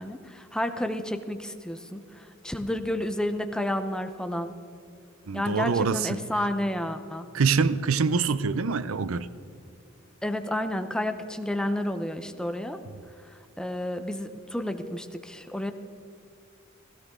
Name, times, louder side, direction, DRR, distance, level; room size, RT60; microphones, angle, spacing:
voice 1, 0.0-4.5 5.3-7.3 10.2-12.8 13.6-15.7, left 1 dB, 5° left, 7 dB, 0.7 m, -31 dB
voice 2, 5.3-6.2 7.3-9.3, right 5 dB, 80° right, 15 dB, 0.6 m, -25 dB
17.0 x 16.0 x 3.7 m, 2.4 s
head